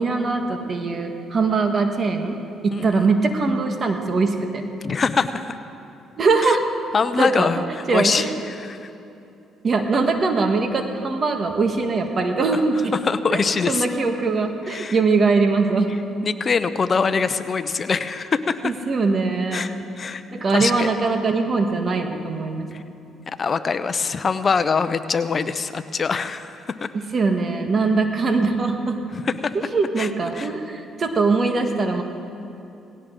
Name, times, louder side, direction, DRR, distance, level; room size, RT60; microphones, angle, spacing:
voice 1, 0.0-2.4 2.6-4.6 6.2-6.6 7.2-7.5 7.9-8.3 9.6-12.9 13.3-13.4 13.7-15.9 18.6-19.7 20.3-22.7 26.9-29.0 29.5-32.0, right 4 dB, 40° right, 5 dB, 1.5 m, -21 dB
voice 2, 2.7-3.1 4.8-5.5 6.4-6.6 6.9-8.9 13.1-13.9 14.7-15.0 16.2-18.6 19.5-19.7 20.0-20.2 20.5-20.9 22.7-22.8 23.3-26.9 29.1-29.5 30.0-30.1 30.3-30.5, left 5 dB, 40° left, 11 dB, 0.7 m, -23 dB
18.0 x 17.0 x 3.9 m, 2.7 s
cardioid pair, 85°, 0 cm